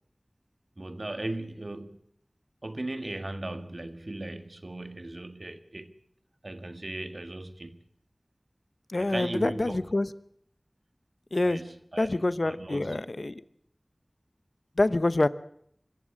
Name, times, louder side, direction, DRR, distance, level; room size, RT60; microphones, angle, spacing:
voice 1, 0.8-2.0 2.6-5.9 6.4-7.8 9.0-9.9 11.4-13.0, right 2 dB, 60° right, 1.7 m, -37 dB
voice 2, 8.9-10.1 11.3-11.6 12.0-13.4 14.8-15.3, left 2 dB, 65° left, 0.9 m, -26 dB
24.5 x 14.0 x 8.5 m
wide cardioid pair, 40°, 0 cm